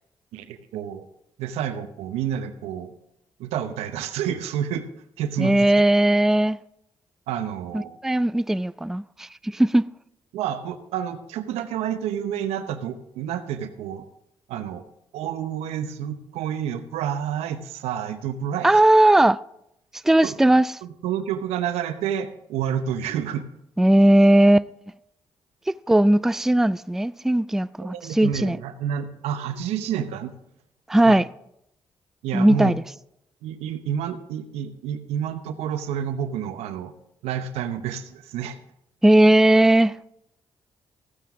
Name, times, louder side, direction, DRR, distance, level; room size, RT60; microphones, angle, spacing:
voice 1, 0.3-1.0 1.4-2.9 3.4-4.9 5.2-5.7 7.3-8.0 10.3-14.0 14.5-14.8 15.1-18.8 20.2-20.3 20.8-23.5 27.8-30.3 31.0-31.2 32.2-32.7 33.4-36.9 37.2-38.6, right 9 dB, 90° right, 0.8 m, -29 dB
voice 2, 5.4-6.6 7.7-9.8 18.6-19.4 20.0-20.7 23.8-24.7 25.7-28.6 30.9-31.2 32.3-32.8 39.0-39.9, right 1 dB, 5° right, 0.3 m, -18 dB
15.0 x 9.2 x 3.6 m
supercardioid pair, 50°, 10 cm